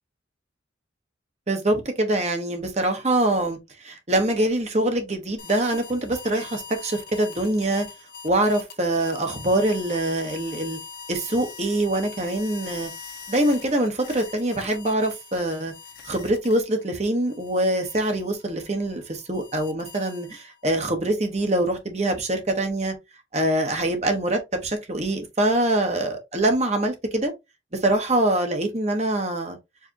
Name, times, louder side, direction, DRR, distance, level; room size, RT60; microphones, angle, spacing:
voice 1, 1.5-7.8 8.2-10.8 11.1-12.9 13.3-15.7 16.0-22.9 23.3-27.3 27.7-29.6, right 1 dB, 35° right, 1.2 m, -24 dB
sound 1, 5.4-16.9 17.3-20.7, left 5 dB, 55° left, 1.1 m, -42 dB
4.9 x 3.4 x 2.9 m
head